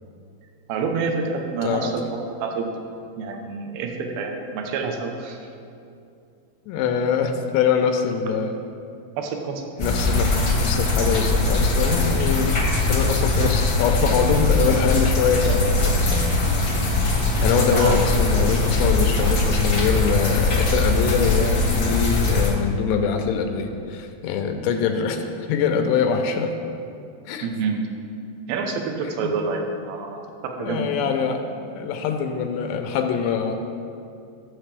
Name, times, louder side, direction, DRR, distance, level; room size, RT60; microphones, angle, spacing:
voice 1, 0.7-2.7 3.2-5.4 9.2-9.6 17.7-18.0 24.6-24.9 27.4-27.8 28.5-31.1, right 4 dB, 70° right, 3 dB, 2.5 m, -28 dB
voice 2, 6.7-8.6 9.8-12.6 12.8-16.3 17.4-26.5 27.3-27.5 29.2-29.3 30.6-31.4 31.7-33.6, left 6 dB, 85° left, 5 dB, 2.8 m, -24 dB
sound 1, 9.8-22.5, left 2 dB, 50° left, 1.1 m, -21 dB
15.0 x 7.9 x 3.4 m, 2.5 s
omnidirectional pair, 5.0 m